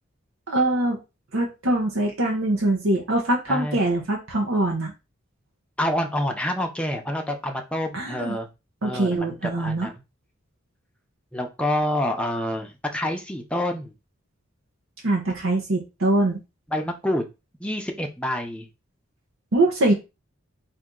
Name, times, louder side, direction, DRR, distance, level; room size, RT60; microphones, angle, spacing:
voice 1, 0.5-1.0 1.3-4.9 7.9-8.3 8.8-9.9 15.0-16.4 19.5-19.9, right 2 dB, 90° right, 0 dB, 1.0 m, -23 dB
voice 2, 3.5-3.8 5.8-8.5 8.8-9.9 11.3-13.9 16.7-17.2 17.6-18.7, left 1 dB, 5° left, 3 dB, 0.6 m, -27 dB
4.2 x 2.7 x 3.8 m, 0.26 s
head